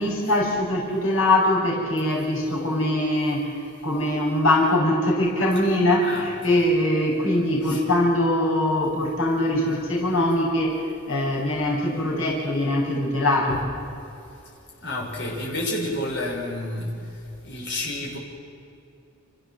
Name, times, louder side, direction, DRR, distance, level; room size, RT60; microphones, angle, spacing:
voice 1, 0.0-13.6, left 1 dB, 80° left, -3 dB, 6.0 m, -22 dB
voice 2, 6.0-6.6 7.6-7.8 13.5-13.6 14.8-16.9 17.4-18.2, left 1 dB, 60° left, -4 dB, 6.0 m, -30 dB
30.0 x 15.0 x 7.9 m, 2.7 s
head